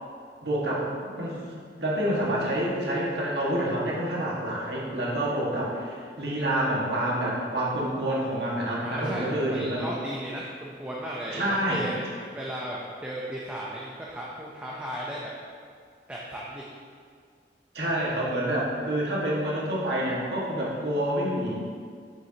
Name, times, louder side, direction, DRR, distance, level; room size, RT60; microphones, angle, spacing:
voice 1, 0.4-0.9 1.2-1.4 1.8-9.9 11.3-11.8 17.7-21.5, right 1 dB, 75° right, -5 dB, 1.6 m, -27 dB
voice 2, 8.8-15.3 16.1-16.7, right 1 dB, 10° right, -5 dB, 0.6 m, -35 dB
7.4 x 6.9 x 2.8 m, 2.1 s
head